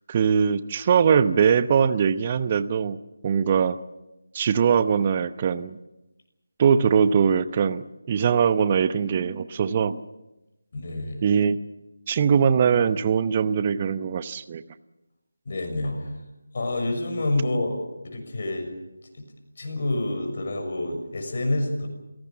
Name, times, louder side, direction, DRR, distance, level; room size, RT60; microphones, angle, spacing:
voice 1, 0.1-3.0 3.2-3.8 4.3-5.8 6.6-10.0 11.2-11.6 12.1-14.6, right 7 dB, 30° right, 13 dB, 0.8 m, -21 dB
voice 2, 10.7-11.2 15.4-16.2 16.5-18.7 19.2-19.3 19.6-21.9, left 2 dB, 45° left, 4 dB, 6.4 m, -28 dB
28.5 x 18.0 x 7.3 m, 0.98 s
figure-of-eight pair, 160°, 0 cm